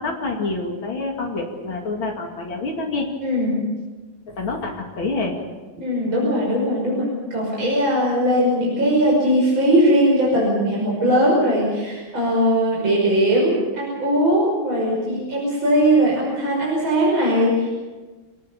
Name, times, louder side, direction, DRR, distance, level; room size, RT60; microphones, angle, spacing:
voice 1, 0.0-3.1 4.3-5.4, left 3 dB, 85° left, 1 dB, 3.3 m, -27 dB
voice 2, 3.2-3.7 5.8-17.7, equal, 90° right, -4 dB, 6.7 m, -19 dB
26.0 x 19.0 x 7.0 m, 1.3 s
omnidirectional pair, 2.1 m